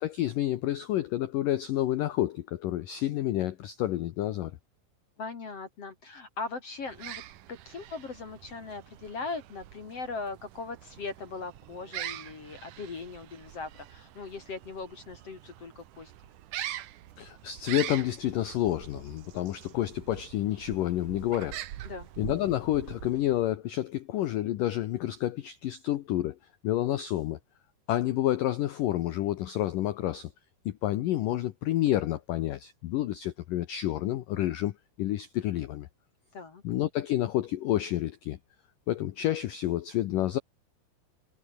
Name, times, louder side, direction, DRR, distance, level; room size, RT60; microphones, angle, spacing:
voice 1, 0.0-4.5 17.2-21.6 22.2-26.4 26.6-27.4 27.9-30.3 30.7-35.9 36.6-38.4 38.9-40.4, left 13 dB, 85° left, 1.9 m, -29 dB
voice 2, 5.2-7.2 7.5-16.1 21.8-22.1 36.3-36.6, left 4 dB, 40° left, 2.6 m, -39 dB
sound 1, 6.8-23.6, right 13 dB, 75° right, 1.9 m, -43 dB
omnidirectional pair, 5.3 m